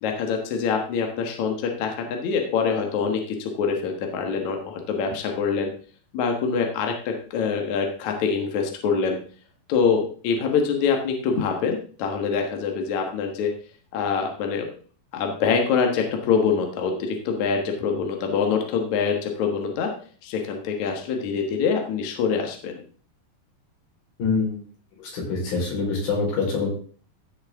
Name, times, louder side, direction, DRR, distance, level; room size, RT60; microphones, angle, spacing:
voice 1, 0.0-5.7 6.1-9.2 9.7-13.5 13.9-14.7 15.1-19.9 20.2-22.8, left 5 dB, 60° left, 3 dB, 2.5 m, -25 dB
voice 2, 24.2-24.6 25.0-26.7, left 4 dB, 85° left, -3 dB, 6.1 m, -25 dB
15.5 x 6.5 x 3.6 m, 0.42 s
omnidirectional pair, 4.1 m